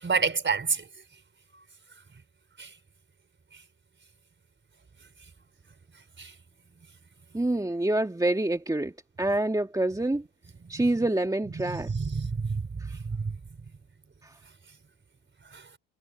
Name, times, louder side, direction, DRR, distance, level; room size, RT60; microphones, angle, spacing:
voice 1, 0.0-0.9 2.6-2.7 6.2-6.3 11.6-13.4 15.5-15.6, right 5 dB, 25° right, 4.6 m, -29 dB
voice 2, 7.3-10.2 10.7-11.9 12.8-13.0 14.2-14.4, right 1 dB, 10° right, 2.2 m, -27 dB
supercardioid pair, 95°, 45 cm